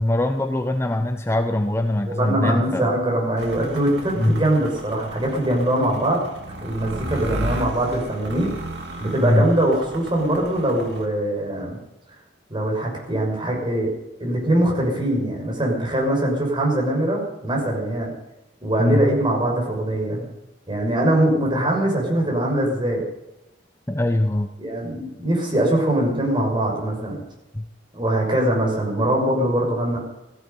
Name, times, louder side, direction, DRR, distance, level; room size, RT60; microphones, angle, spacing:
voice 1, 0.0-2.9 4.2-4.4 9.2-9.5 18.8-19.1 23.9-24.5 27.5-27.7, left 1 dB, 15° left, 7 dB, 0.8 m, -22 dB
voice 2, 2.1-6.2 6.6-8.5 9.0-11.8 12.5-13.9 14.2-18.1 18.6-20.3 20.7-23.0 24.6-27.2 27.9-30.0, right 1 dB, 25° right, -1 dB, 6.2 m, -22 dB
sound 1, 3.4-11.1, right 1 dB, 70° right, 2.8 m, -34 dB
16.5 x 14.0 x 5.5 m, 0.93 s
head